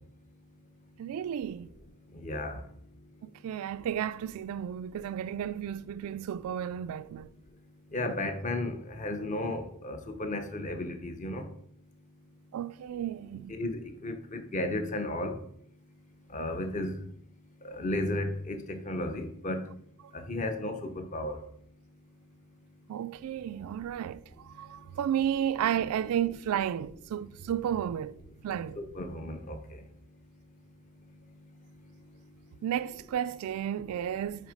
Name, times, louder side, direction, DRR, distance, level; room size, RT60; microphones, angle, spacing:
voice 1, 1.0-1.7 3.2-7.3 12.5-13.5 22.9-28.2 28.4-28.8 32.6-34.5, right 9 dB, 75° right, 0.3 m, -33 dB
voice 2, 2.2-2.6 7.9-11.5 13.5-15.4 16.3-17.0 17.6-19.6 20.1-21.4 28.8-29.6, left 1 dB, 35° left, 0.8 m, -34 dB
6.3 x 4.5 x 5.0 m
head